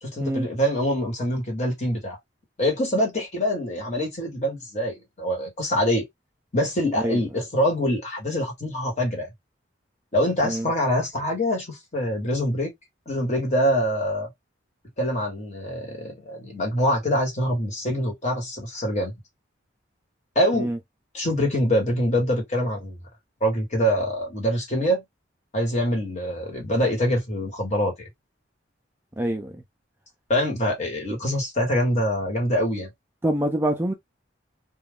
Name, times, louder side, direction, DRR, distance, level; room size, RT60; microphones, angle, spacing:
voice 1, 0.0-2.2 2.6-6.0 6.5-9.3 10.1-12.7 13.1-14.3 15.0-19.1 20.3-20.7 21.1-23.0 23.4-25.0 25.5-28.1 30.3-32.9, equal, 35° left, 1.2 m, -24 dB
voice 2, 29.2-29.5 33.2-33.9, right 1 dB, 10° right, 0.3 m, -25 dB
2.3 x 2.3 x 3.4 m
head